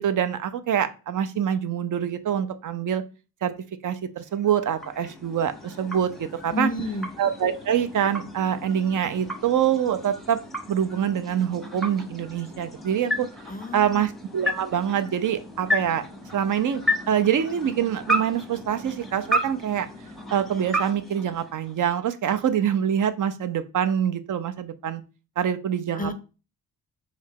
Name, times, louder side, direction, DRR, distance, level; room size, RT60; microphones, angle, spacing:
voice 1, 0.0-3.0 3.4-3.5 3.8-6.7 7.2-10.4 10.7-13.3 13.7-16.0 16.3-16.8 17.1-19.9 20.3-25.0 25.4-26.1, right 9 dB, 55° right, 11 dB, 0.5 m, -25 dB
sound 1, 4.2-22.0, equal, ahead, 0.8 m, -33 dB
voice 2, 6.5-7.1 13.5-14.1 25.9-26.1, left 2 dB, 25° left, 10 dB, 0.4 m, -30 dB
3.6 x 3.2 x 3.6 m, 0.32 s
cardioid pair, 105°, 38 cm